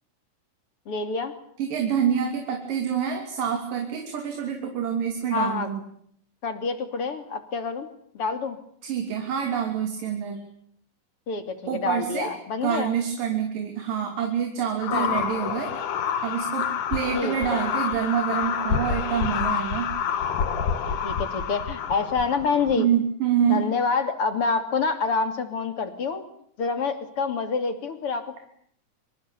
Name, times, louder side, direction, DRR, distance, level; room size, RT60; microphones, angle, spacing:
voice 1, 0.9-1.3 5.3-5.7 6.4-7.9 8.1-8.6 11.3-12.9 14.9-15.2 17.1-17.6 21.0-22.9 23.5-26.2 26.6-28.4, left 4 dB, 40° left, 8 dB, 3.5 m, -27 dB
voice 2, 1.6-5.8 8.8-10.4 11.7-12.3 12.6-15.7 16.2-19.9 22.8-23.6, right 8 dB, 75° right, 4 dB, 4.8 m, -26 dB
sound 1, 14.8-22.8, left 7 dB, 65° left, 3.1 m, -28 dB
26.0 x 25.5 x 8.5 m, 0.66 s
omnidirectional pair, 4.0 m